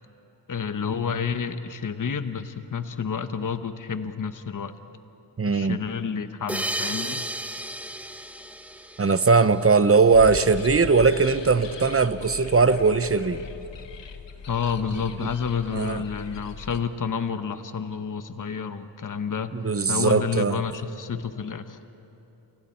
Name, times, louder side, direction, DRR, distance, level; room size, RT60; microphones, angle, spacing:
voice 1, 0.5-4.7 5.4-7.3 14.5-19.5 19.9-21.8, left 6 dB, 45° left, 10 dB, 0.9 m, -29 dB
voice 2, 5.4-5.8 9.0-13.4 15.2-15.3 15.7-16.0 19.5-20.6, right 4 dB, 30° right, 13 dB, 0.7 m, -20 dB
sound 1, 6.5-9.8, right 1 dB, 5° right, 0.8 m, -33 dB
sound 2, 10.1-16.8, left 5 dB, 75° left, 1.2 m, -40 dB
28.5 x 28.5 x 4.4 m, 2.9 s
wide cardioid pair, 115°, 44 cm